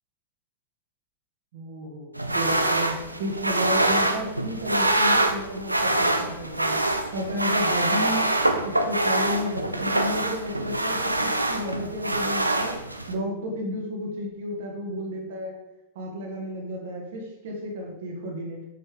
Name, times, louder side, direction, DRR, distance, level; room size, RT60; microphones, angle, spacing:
voice 1, 1.5-6.8 7.1-8.3 8.6-12.8 13.1-15.5 15.9-18.7, equal, 55° right, 0 dB, 1.8 m, -32 dB
sound 1, 2.1-13.1, right 1 dB, 85° right, 0.5 m, -25 dB
7.5 x 6.2 x 3.5 m, 0.91 s
figure-of-eight pair, 90°, 0 cm